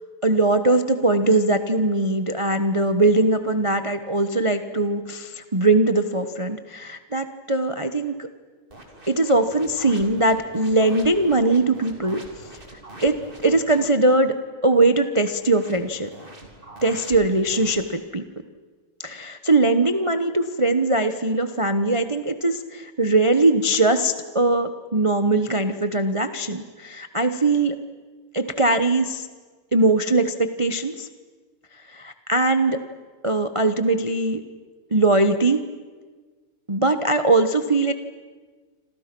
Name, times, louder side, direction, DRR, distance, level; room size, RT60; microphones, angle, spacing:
voice 1, 0.2-8.3 9.1-12.2 13.0-13.2 13.4-14.4 14.6-16.1 16.8-18.2 19.0-27.8 28.3-29.2 29.7-31.1 31.9-32.8 33.2-34.4 34.9-35.6 36.7-37.9, right 2 dB, 50° right, 9 dB, 0.3 m, -21 dB
sound 1, 8.7-13.9 15.3-17.8, right 1 dB, 25° right, 3.4 m, -44 dB
28.5 x 26.5 x 6.1 m, 1.4 s
omnidirectional pair, 2.4 m